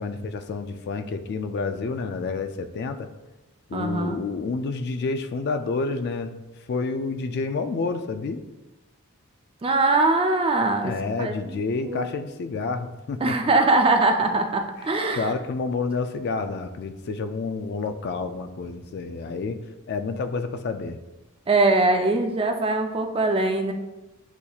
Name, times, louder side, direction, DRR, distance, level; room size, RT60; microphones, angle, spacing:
voice 1, 0.0-3.1 3.7-6.3 6.7-8.4 10.8-13.4 15.1-19.6 19.9-21.0, left 4 dB, 50° left, 8 dB, 0.3 m, -29 dB
voice 2, 3.7-4.2 9.6-10.9 11.2-12.1 13.2-15.3 21.5-23.7, right 2 dB, 25° right, 4 dB, 0.4 m, -22 dB
8.0 x 2.8 x 2.3 m, 1.0 s
head